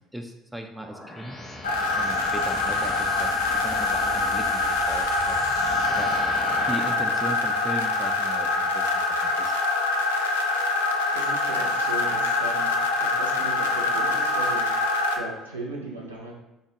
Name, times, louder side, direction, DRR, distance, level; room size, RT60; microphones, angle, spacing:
voice 1, 0.1-1.4 2.0-6.1 6.7-9.6, right 1 dB, 5° right, 3 dB, 0.3 m, -38 dB
sound 1, 0.8-7.2, left 1 dB, 35° left, 0.7 m, -39 dB
sound 2, 1.6-15.2, left 3 dB, 80° left, 0.3 m, -24 dB
voice 2, 11.1-16.3, right 2 dB, 90° right, -2 dB, 0.5 m, -37 dB
3.8 x 2.1 x 2.8 m, 0.95 s
hypercardioid pair, 55°, 0 cm